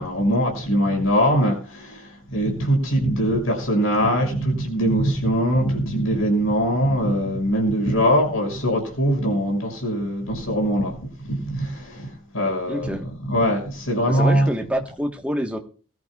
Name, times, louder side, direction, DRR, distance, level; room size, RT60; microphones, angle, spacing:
voice 1, 0.0-13.0 13.2-14.5, equal, 80° left, 6.0 m, -22 dB
voice 2, 12.7-13.0 14.1-15.6, equal, 5° right, 1.2 m, -27 dB
21.5 x 13.5 x 2.4 m
head